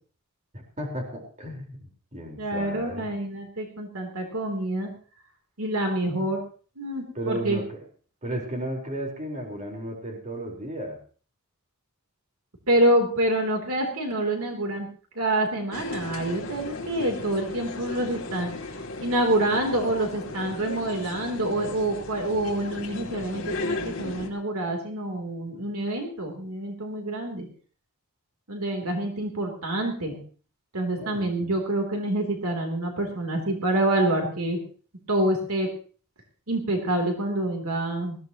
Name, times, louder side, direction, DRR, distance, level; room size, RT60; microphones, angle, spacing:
voice 1, 0.5-3.1 7.1-7.8 8.2-11.0 31.0-31.5, right 1 dB, 35° right, 1 dB, 4.5 m, -34 dB
voice 2, 2.4-4.9 5.6-6.4 6.8-7.6 12.7-14.9 15.2-18.5 19.0-27.5 28.5-30.2 30.7-34.6 35.1-35.7 36.5-38.2, right 1 dB, 75° right, 2 dB, 3.4 m, -27 dB
sound 1, 15.7-24.3, left 3 dB, 60° left, 2.8 m, -36 dB
20.0 x 15.5 x 3.1 m, 0.41 s
head